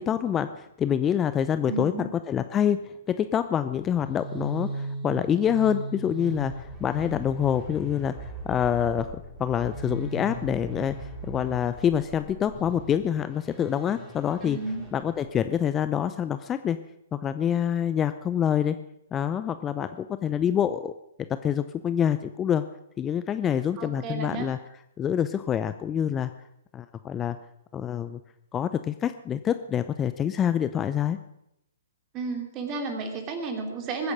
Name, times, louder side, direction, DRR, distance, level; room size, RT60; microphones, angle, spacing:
voice 1, 0.0-9.1 9.4-14.6 14.9-16.8 17.1-18.8 19.1-20.9 21.3-22.6 23.0-24.6 25.0-26.3 26.7-27.4 27.7-28.2 28.5-31.2, left 9 dB, 20° left, 11 dB, 0.6 m, -26 dB
voice 2, 1.7-2.1 14.4-14.8 23.8-24.5 32.1-34.1, right 3 dB, 30° right, 4 dB, 3.2 m, -32 dB
sound 1, 3.8-15.6, right 2 dB, 10° right, 5.6 m, -38 dB
22.0 x 9.7 x 6.2 m, 0.81 s
figure-of-eight pair, 120°, 0 cm